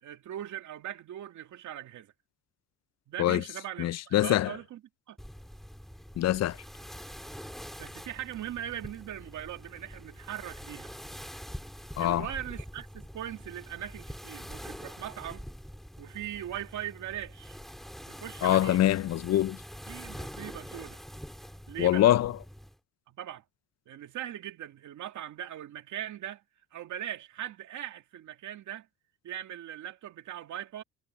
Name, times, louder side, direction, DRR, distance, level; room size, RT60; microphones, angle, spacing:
voice 1, 0.0-2.1 3.1-4.8 5.1-5.2 7.8-10.9 12.0-15.5 16.0-17.6 18.1-18.8 19.9-21.0 21.7-22.2 23.1-23.4 23.9-26.4 26.7-28.9 29.2-30.8, right 11 dB, 75° right, 2.4 m, -40 dB
voice 2, 3.8-4.6 6.2-6.6 12.0-12.3 18.4-19.6 21.8-22.4, left 13 dB, 60° left, 0.5 m, -24 dB
Sitting in a dress, 5.2-22.8, equal, ahead, 3.1 m, -45 dB
cardioid pair, 90°, 30 cm